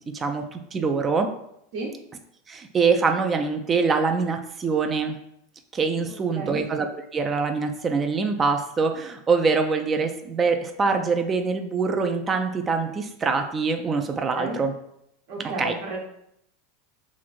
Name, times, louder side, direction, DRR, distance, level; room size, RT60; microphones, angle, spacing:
voice 1, 0.1-1.3 2.5-5.2 5.7-6.9 7.1-14.7 15.4-15.8, right 4 dB, 25° right, 6 dB, 0.3 m, -24 dB
voice 2, 15.3-16.0, right 2 dB, 65° right, -2 dB, 0.9 m, -32 dB
2.9 x 2.5 x 2.4 m, 0.75 s
hypercardioid pair, 90°, 0 cm